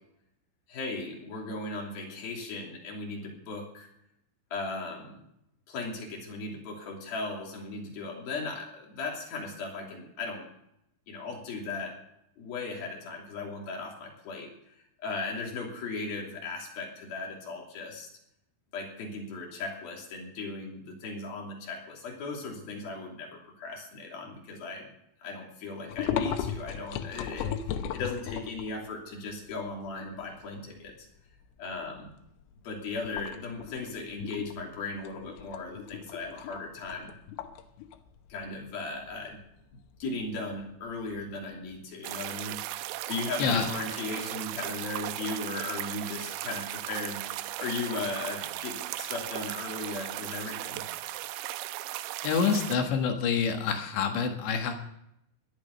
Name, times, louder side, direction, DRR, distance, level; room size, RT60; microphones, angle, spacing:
voice 1, 0.7-3.9 4.5-5.2 5.7-10.5 11.1-12.0 12.4-18.1 18.7-24.9 25.2-30.9 31.6-32.1 32.6-37.1 38.3-39.4 39.7-42.6 43.1-50.8, left 3 dB, 55° left, -1 dB, 4.5 m, -37 dB
sound 1, 25.9-28.8 29.3-29.4 29.7-30.9 31.3-31.6 32.0-32.5 33.0-41.7, left 9 dB, 85° left, 3.6 m, -36 dB
sound 2, 42.0-52.8, right 15 dB, 85° right, 2.5 m, -37 dB
voice 2, 52.2-54.7, left 6 dB, 70° left, 4 dB, 3.5 m, -27 dB
18.0 x 12.5 x 5.3 m, 0.80 s
omnidirectional pair, 5.7 m